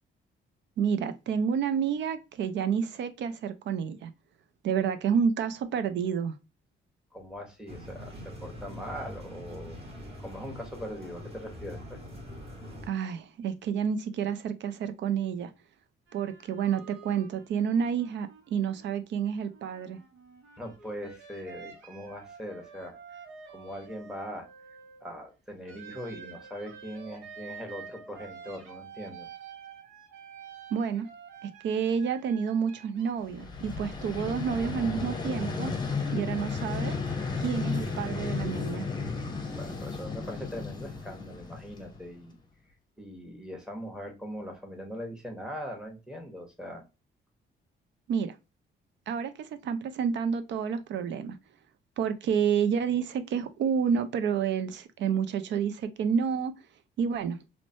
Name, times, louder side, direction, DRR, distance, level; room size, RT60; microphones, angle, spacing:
voice 1, 0.8-4.1 4.6-6.3 12.9-15.5 16.1-20.0 30.7-31.1 31.4-35.7 36.1-36.9 37.4-38.9 48.1-48.4 49.1-51.4 52.0-56.5 57.0-57.4, right 7 dB, 65° right, 0.4 m, -29 dB
voice 2, 7.1-9.8 10.2-12.0 20.6-23.0 23.5-24.5 25.0-29.3 39.5-42.3 43.0-46.8, equal, 5° right, 0.9 m, -41 dB
sound 1, 7.7-12.9, equal, 30° right, 1.2 m, -43 dB
sound 2, 16.1-19.0 19.4-25.2 25.7-33.1, right 6 dB, 90° right, 0.7 m, -49 dB
Vehicle, 33.2-42.2, left 4 dB, 20° left, 0.7 m, -34 dB
3.0 x 2.1 x 2.5 m
cardioid pair, 90°, 20 cm